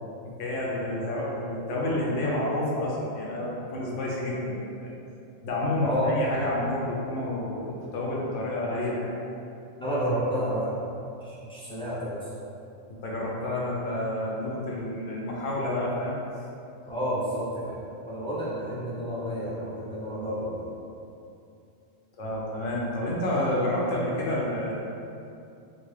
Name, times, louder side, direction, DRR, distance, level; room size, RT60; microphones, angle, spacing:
voice 1, 0.2-4.9 5.4-7.6 7.9-9.1 12.9-16.2 22.2-24.7, left 1 dB, 70° left, -4 dB, 0.9 m, -29 dB
voice 2, 5.8-6.1 9.8-10.8 11.2-12.3 16.9-17.8 18.0-20.7, equal, 10° left, -10 dB, 0.3 m, -30 dB
3.8 x 2.2 x 3.1 m, 2.7 s
omnidirectional pair, 1.4 m